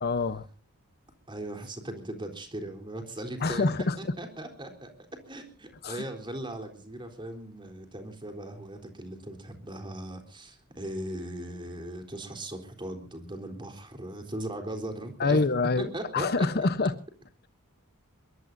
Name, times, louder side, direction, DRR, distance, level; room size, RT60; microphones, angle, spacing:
voice 1, 0.0-0.5 3.4-4.0 5.8-6.0 15.2-16.9, left 3 dB, 45° left, 13 dB, 0.9 m, -26 dB
voice 2, 1.3-4.9 5.3-15.4 15.8-16.7, right 1 dB, 20° right, 5 dB, 3.8 m, -38 dB
23.0 x 22.0 x 2.7 m, 0.37 s
head